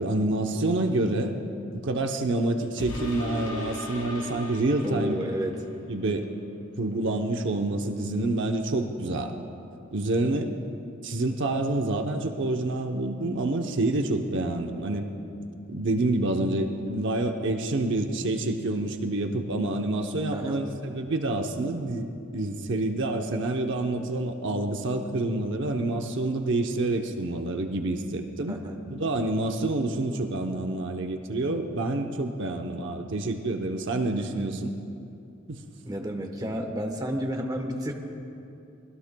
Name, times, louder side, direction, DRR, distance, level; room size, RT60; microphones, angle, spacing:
voice 1, 0.0-1.3 1.7-5.2 5.9-6.2 6.8-9.3 9.9-10.5 11.0-15.0 15.7-28.6 28.9-34.7 35.5-35.6, right 2 dB, 60° right, 4 dB, 0.8 m, -27 dB
sound 1, 2.8-5.7 6.2-6.3, left 1 dB, 80° left, 3.4 m, -37 dB
voice 2, 4.8-5.6 20.3-20.7 28.5-28.8 35.8-37.9, equal, 20° right, 3 dB, 1.1 m, -31 dB
25.5 x 19.5 x 2.2 m, 2.7 s
head